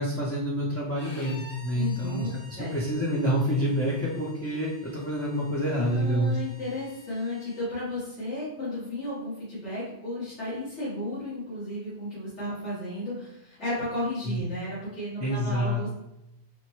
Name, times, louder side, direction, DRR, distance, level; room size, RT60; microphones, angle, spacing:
voice 1, 0.0-2.3 2.6-6.4 14.3-14.4 15.2-15.8, equal, 25° left, -6 dB, 0.3 m, -27 dB
Bowed string instrument, 0.9-7.7, left 1 dB, 65° left, 1.2 m, -51 dB
voice 2, 1.7-2.8 5.8-15.9, left 1 dB, 85° left, -11 dB, 1.7 m, -34 dB
4.2 x 2.1 x 2.9 m, 0.85 s
omnidirectional pair, 1.1 m